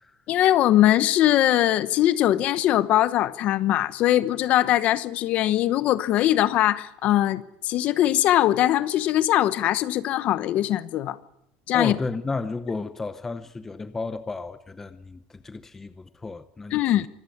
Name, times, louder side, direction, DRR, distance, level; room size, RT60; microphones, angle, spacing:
voice 1, 0.3-11.2 11.7-12.0 16.7-17.1, left 13 dB, 40° left, 1.0 m, -21 dB
voice 2, 11.7-16.9, left 3 dB, 10° left, 0.8 m, -33 dB
24.5 x 14.0 x 10.0 m
cardioid pair, 180°, 4 cm